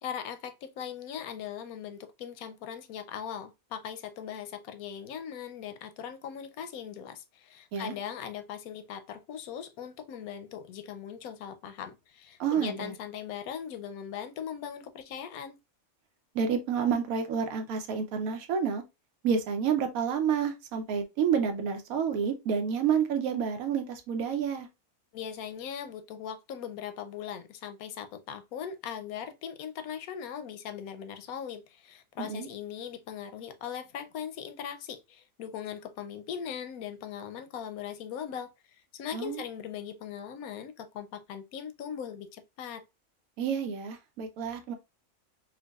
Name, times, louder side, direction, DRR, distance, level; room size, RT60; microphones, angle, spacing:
voice 1, 0.0-15.6 25.1-38.5 38.9-42.8, left 8 dB, 85° left, 1.0 m, -40 dB
voice 2, 12.4-12.9 16.3-18.8 19.2-24.7 32.2-32.5 39.1-39.4 43.4-44.8, right 7 dB, 85° right, 1.2 m, -29 dB
4.6 x 2.2 x 2.3 m
omnidirectional pair, 1.5 m